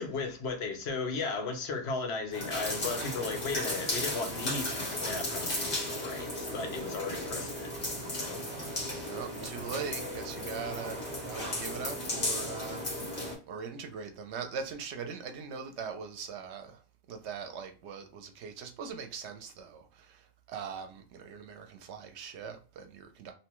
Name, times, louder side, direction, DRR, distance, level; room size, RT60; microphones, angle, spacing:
voice 1, 0.0-7.7 8.1-8.4, left 4 dB, 70° left, 0.9 m, -36 dB
sound 1, 2.3-13.4, left 1 dB, 50° left, 1.4 m, -35 dB
voice 2, 9.1-12.8 13.5-16.8 17.1-23.3, right 6 dB, 80° right, 0.9 m, -41 dB
2.8 x 2.2 x 2.9 m
omnidirectional pair, 1.1 m